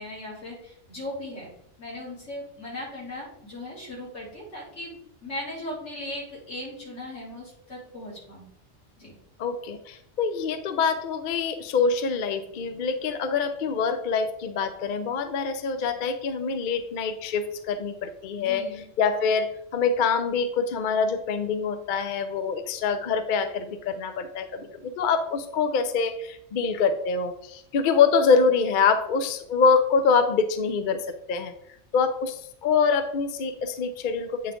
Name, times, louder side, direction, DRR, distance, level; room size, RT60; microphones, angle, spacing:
voice 1, 0.0-1.5 1.8-8.5 9.0-9.2 18.4-18.8, left 1 dB, 75° left, -6 dB, 3.0 m, -38 dB
voice 2, 9.4-18.7 19.0-31.0 31.3-31.5 31.9-34.5, left 5 dB, 55° left, 9 dB, 0.6 m, -25 dB
8.5 x 3.6 x 3.6 m, 0.70 s
omnidirectional pair, 1.2 m